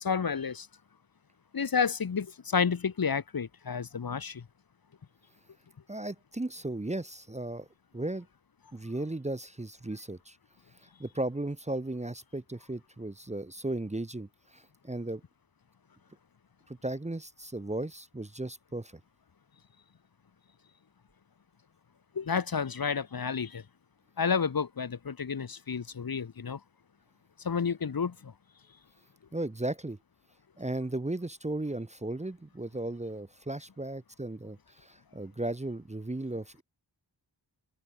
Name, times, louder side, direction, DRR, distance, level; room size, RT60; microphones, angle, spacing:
voice 1, 0.0-0.7 1.5-4.4 22.1-23.6 24.2-26.6 27.4-28.3, left 6 dB, 50° left, 1.2 m, -30 dB
voice 2, 5.9-7.7 7.9-8.3 8.7-10.4 11.0-15.2 16.7-18.9 29.3-30.0 30.6-36.6, right 2 dB, 15° right, 0.9 m, -36 dB
wide cardioid pair, 100°, 44 cm